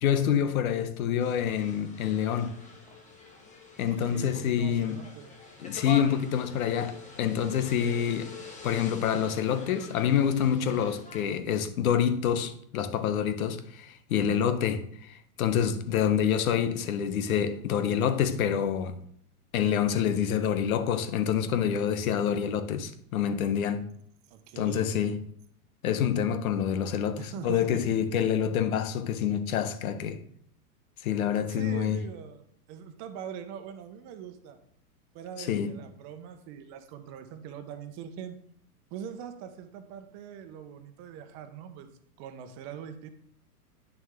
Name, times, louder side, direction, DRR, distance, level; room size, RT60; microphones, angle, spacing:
voice 1, 0.0-2.5 3.8-5.0 5.6-6.9 7.2-8.3 8.6-13.6 14.1-14.8 15.4-18.9 19.5-23.9 24.6-25.2 25.8-30.2 31.0-32.0 35.4-35.8, left 8 dB, 65° left, 1.1 m, -27 dB
sound 1, 1.2-11.2, left 3 dB, 15° left, 1.4 m, -45 dB
voice 2, 4.0-5.3 14.1-14.4 24.3-24.9 27.2-27.8 31.4-34.6 35.1-38.4 38.9-41.9 42.2-43.1, right 8 dB, 35° right, 1.1 m, -42 dB
9.4 x 6.4 x 3.7 m
hypercardioid pair, 120°, 46 cm